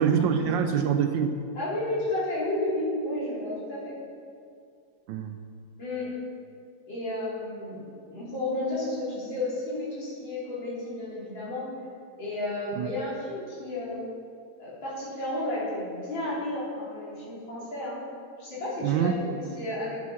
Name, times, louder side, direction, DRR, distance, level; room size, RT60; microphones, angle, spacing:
voice 1, 0.0-1.4 5.1-5.4 12.8-12.9 18.8-19.1, right 7 dB, 75° right, 7 dB, 1.2 m, -25 dB
voice 2, 1.5-4.0 5.8-6.1 6.9-11.7 12.2-14.0 14.6-18.0 18.4-20.0, left 1 dB, 65° left, -8 dB, 4.0 m, -32 dB
10.5 x 7.2 x 5.8 m, 2.3 s
omnidirectional pair, 2.2 m